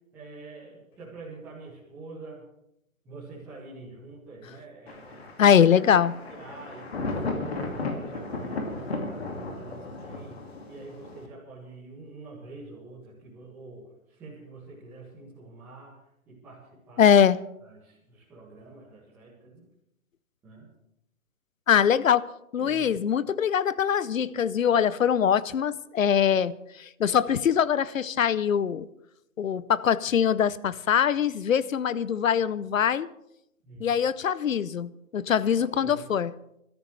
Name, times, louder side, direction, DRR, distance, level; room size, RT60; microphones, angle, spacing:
voice 1, 0.1-2.4 3.0-5.3 6.0-16.0 16.3-17.2 17.6-19.6 20.4-20.7 22.6-22.9 33.6-34.0 35.5-36.1, right 3 dB, 5° right, 1.9 m, -46 dB
Thunder, 4.9-11.3, left 3 dB, 45° left, 2.3 m, -35 dB
voice 2, 5.4-6.1 17.0-17.4 21.7-28.9 29.4-33.1 33.8-36.3, left 8 dB, 70° left, 0.8 m, -23 dB
25.0 x 13.0 x 3.3 m
hypercardioid pair, 180°, 42 cm